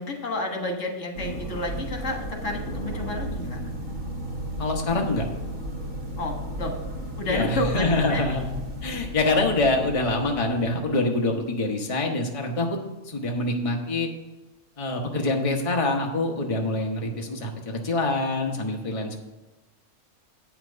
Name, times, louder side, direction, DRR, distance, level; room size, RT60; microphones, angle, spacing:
voice 1, 0.0-3.6 6.2-6.7 7.2-8.2, left 2 dB, 70° left, 2 dB, 1.8 m, -30 dB
sound 1, 1.1-10.8, right 1 dB, 90° right, 2.0 m, -34 dB
voice 2, 4.6-5.2 7.2-8.5 8.8-12.8 13.0-14.1 14.8-19.2, left 2 dB, 25° left, 1 dB, 1.1 m, -25 dB
8.5 x 5.9 x 6.6 m, 1.1 s
omnidirectional pair, 1.3 m